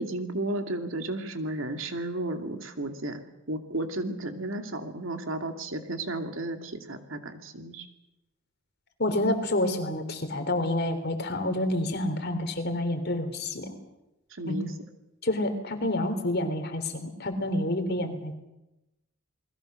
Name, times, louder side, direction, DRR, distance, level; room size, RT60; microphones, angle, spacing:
voice 1, 0.0-3.2 3.5-7.9 14.3-14.7, right 1 dB, 65° right, 6 dB, 2.5 m, -33 dB
voice 2, 9.0-13.7 14.5-14.7 15.2-18.3, left 1 dB, 50° left, 7 dB, 3.4 m, -28 dB
28.5 x 21.0 x 6.5 m, 0.92 s
head